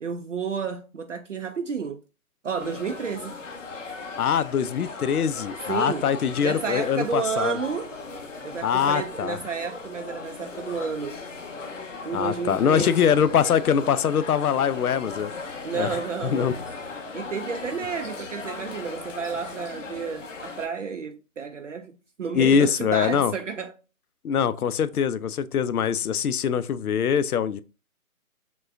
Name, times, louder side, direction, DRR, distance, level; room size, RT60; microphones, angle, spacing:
voice 1, 0.0-2.0 2.4-3.4 5.7-6.1 6.4-7.9 8.4-11.2 12.0-13.1 15.6-16.5 17.1-23.7, right 6 dB, 60° right, 0.5 m, -31 dB
sound 1, 2.6-20.7, left 3 dB, 60° left, 0.9 m, -38 dB
voice 2, 4.2-7.6 8.6-9.4 12.1-15.3 15.7-16.5 22.3-23.3 24.2-27.6, left 8 dB, 80° left, 0.5 m, -23 dB
5.9 x 2.2 x 2.5 m
figure-of-eight pair, 165°, 43 cm